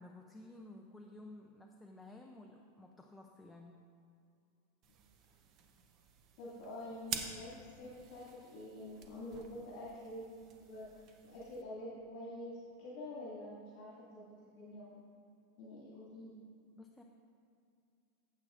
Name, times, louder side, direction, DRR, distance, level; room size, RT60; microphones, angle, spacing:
voice 1, 0.0-3.8 16.7-17.0, left 2 dB, 5° left, 1 dB, 0.4 m, -54 dB
sound 1, 4.8-11.6, right 7 dB, 35° right, 0.7 m, -49 dB
voice 2, 6.4-10.3 10.6-15.0 15.6-16.4, left 1 dB, 50° left, -7 dB, 2.1 m, -47 dB
15.0 x 7.8 x 2.5 m, 2.4 s
supercardioid pair, 160°, 0 cm